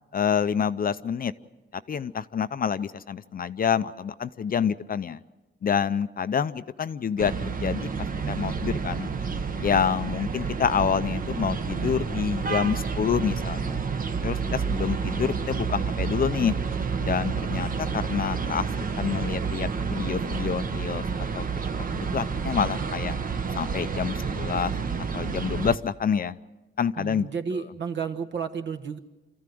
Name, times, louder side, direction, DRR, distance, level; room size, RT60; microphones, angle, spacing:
voice 1, 0.1-1.3 1.9-5.2 5.6-7.9 8.3-9.1 9.6-13.8 14.2-16.6 17.0-18.7 19.0-21.0 21.3-21.4 21.9-23.2 23.5-24.7 25.1-26.4 26.8-27.3, left 7 dB, 45° left, 13 dB, 0.6 m, -27 dB
sound 1, 7.2-25.8, right 5 dB, 40° right, 1.0 m, -29 dB
voice 2, 27.0-29.0, right 6 dB, 60° right, 7 dB, 1.4 m, -32 dB
27.0 x 14.5 x 7.8 m, 1.2 s
cardioid pair, 110°, 21 cm